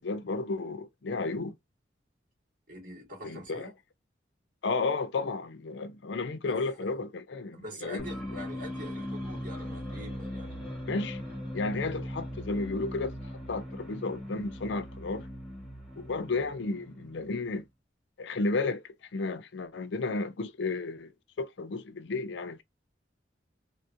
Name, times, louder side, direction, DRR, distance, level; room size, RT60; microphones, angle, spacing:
voice 1, 0.0-1.5 3.2-3.7 4.6-8.1 10.9-11.2 11.5-13.2 13.5-15.3 16.0-17.6 18.2-18.8 19.1-21.1 21.4-22.6, left 3 dB, 80° left, 0.5 m, -32 dB
voice 2, 2.7-3.7 6.5-6.6 7.5-10.7, left 1 dB, 50° right, 1.9 m, -44 dB
sound 1, 8.0-17.6, equal, 5° right, 1.3 m, -39 dB
3.5 x 2.3 x 2.5 m
head